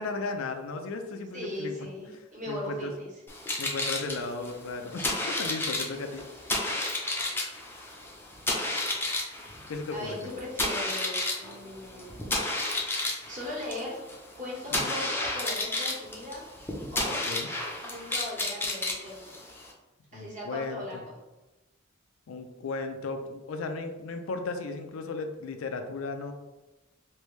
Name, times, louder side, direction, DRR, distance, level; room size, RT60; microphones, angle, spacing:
voice 1, 0.0-1.7 2.5-2.9 3.6-6.2 9.7-10.4 14.7-14.9 17.1-17.5 20.1-21.0 22.3-26.3, left 3 dB, 85° left, 6 dB, 0.4 m, -35 dB
voice 2, 1.3-3.1 9.9-12.2 13.3-14.0 14.4-16.4 16.9-17.3 17.8-19.3 20.1-21.1, left 1 dB, 40° right, -6 dB, 1.3 m, -38 dB
sound 1, 3.3-19.7, left 2 dB, 10° left, 0.5 m, -32 dB
3.3 x 2.6 x 3.1 m, 1.1 s
head